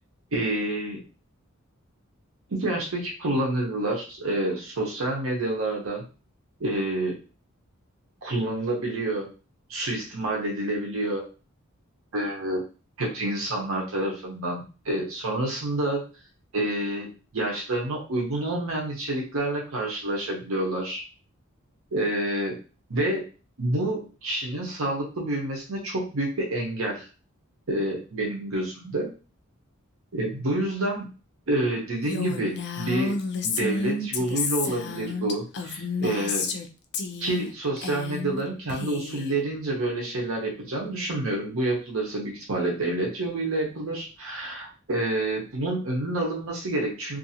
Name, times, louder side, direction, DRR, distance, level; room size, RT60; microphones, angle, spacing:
voice 1, 0.3-1.0 2.5-6.0 6.6-7.2 8.2-9.3 9.7-11.2 12.1-12.6 13.0-16.0 16.5-17.1 17.3-21.1 21.9-22.6 22.9-23.3 23.6-27.1 27.7-29.1 30.1-31.1 31.5-33.2 33.4-36.5 37.2-47.2, right 1 dB, 80° right, -1 dB, 0.8 m, -28 dB
Female speech woman speaking, 32.0-36.7 36.9-37.5 37.8-38.4 38.7-39.3, left 4 dB, 55° left, 0.4 m, -31 dB
2.6 x 2.5 x 2.7 m, 0.34 s
head